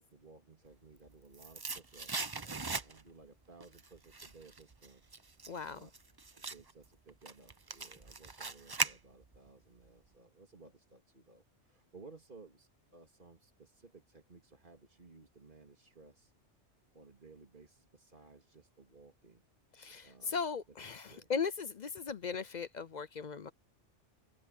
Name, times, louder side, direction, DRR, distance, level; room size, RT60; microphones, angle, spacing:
voice 1, 0.0-5.9 6.4-16.3 16.9-19.4 20.0-20.4 21.0-21.3, right 3 dB, 45° right, 3.2 m, -58 dB
sound 1, 0.8-3.3 3.6-9.5 9.8-9.9, right 3 dB, 25° right, 0.6 m, -40 dB
voice 2, 5.5-5.8 19.8-23.5, left 5 dB, 50° left, 0.6 m, -38 dB
open air
omnidirectional pair, 1.2 m